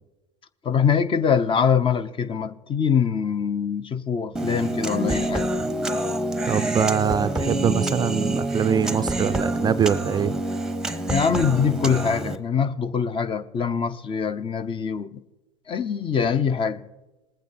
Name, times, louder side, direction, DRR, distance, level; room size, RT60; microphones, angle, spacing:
voice 1, 0.6-5.5 11.1-15.2 15.7-16.9, left 6 dB, 30° left, 0.7 m, -23 dB
Human voice, 4.4-12.4, right 1 dB, 5° right, 0.9 m, -27 dB
voice 2, 6.4-10.3, right 7 dB, 25° right, 0.4 m, -23 dB
19.5 x 8.4 x 4.2 m
hypercardioid pair, 90°, 17 cm